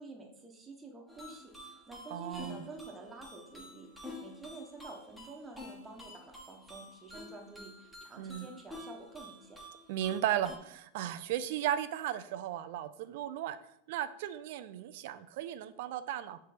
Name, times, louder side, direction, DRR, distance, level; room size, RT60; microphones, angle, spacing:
voice 1, 0.0-3.9 4.2-9.6, right 3 dB, 15° right, 1 dB, 1.4 m, -49 dB
sound 1, 1.1-10.6, left 1 dB, ahead, 1.6 m, -49 dB
voice 2, 2.1-2.7 8.2-8.5 9.9-13.6 13.9-16.4, right 11 dB, 65° right, 13 dB, 0.5 m, -35 dB
6.4 x 3.4 x 5.1 m, 0.73 s
hypercardioid pair, 110°, 0 cm